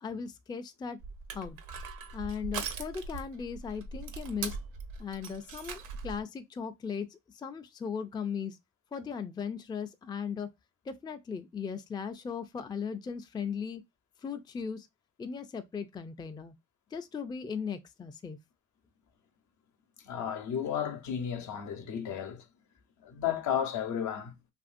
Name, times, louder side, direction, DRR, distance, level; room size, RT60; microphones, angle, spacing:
voice 1, 0.0-1.0 1.3-1.6 2.1-4.6 5.0-8.6 8.9-10.5 10.9-13.8 14.2-14.9 15.2-16.5 16.9-18.4, left 6 dB, 15° left, 0.3 m, -37 dB
Crushing, 1.0-6.2, right 5 dB, 80° right, 0.7 m, -40 dB
voice 2, 20.0-22.5 23.0-24.4, left 9 dB, 70° left, 0.8 m, -33 dB
2.8 x 2.6 x 2.5 m
cardioid pair, 90°, 30 cm